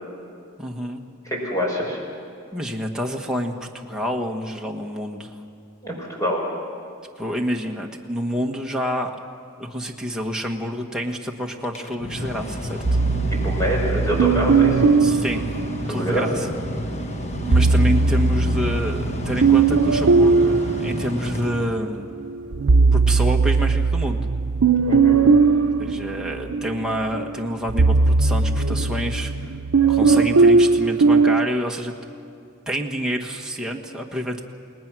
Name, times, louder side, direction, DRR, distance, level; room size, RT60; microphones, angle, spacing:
voice 1, 0.6-1.0 2.5-5.3 7.2-9.1 9.6-12.8 15.0-15.5 15.9-16.5 17.5-22.1 22.9-24.2 25.8-29.3 29.9-31.9 32.7-34.4, equal, 5° right, 0 dB, 1.5 m, -28 dB
voice 2, 1.2-2.0 5.8-6.4 13.3-14.8 15.9-16.2 24.9-25.2, equal, 15° left, -1 dB, 5.5 m, -25 dB
Mechanical fan, 11.6-22.2, equal, 35° left, 1.4 m, -31 dB
sound 1, 12.8-16.3 17.3-21.7 22.2-31.5, right 4 dB, 85° right, 0.7 m, -19 dB
30.0 x 19.0 x 6.2 m, 2.5 s
head